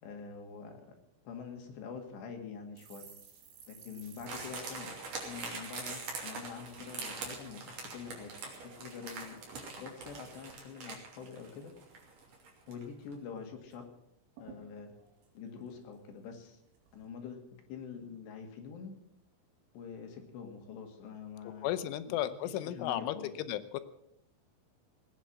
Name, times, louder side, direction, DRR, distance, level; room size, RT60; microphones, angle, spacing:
voice 1, 0.0-1.0 1.3-3.1 3.7-4.9 5.2-8.3 8.8-9.4 9.8-11.7 12.7-13.9 14.4-14.9 15.3-16.6 16.9-17.4 17.7-18.9 19.7-21.7 22.1-22.2 22.4-23.3, left 6 dB, 65° left, 3 dB, 4.1 m, -45 dB
sound 1, 2.8-6.3 6.6-6.8 7.1-7.7 8.2-9.0 9.3-11.0 11.3-11.5 11.8-12.4 12.7-12.8 13.1-13.8 14.1-14.2 14.4-16.2 16.7-17.1, right 6 dB, 75° right, 4.9 m, -58 dB
sound 2, 4.3-12.9 13.1-13.2, right 4 dB, 45° right, 4.1 m, -43 dB
voice 2, 21.6-23.8, left 12 dB, 85° left, 13 dB, 3.3 m, -34 dB
18.5 x 9.4 x 7.4 m, 0.77 s
omnidirectional pair, 5.5 m